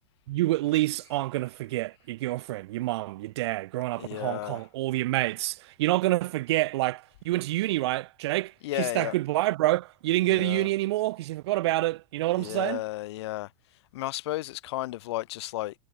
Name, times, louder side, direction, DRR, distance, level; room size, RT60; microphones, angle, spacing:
voice 1, 0.3-12.8, right 17 dB, 55° right, 0.4 m, -27 dB
voice 2, 4.0-4.6 8.6-9.1 10.3-10.7 12.4-13.5 13.9-15.7, left 17 dB, 55° left, 0.9 m, -33 dB
supercardioid pair, 175°, 17 cm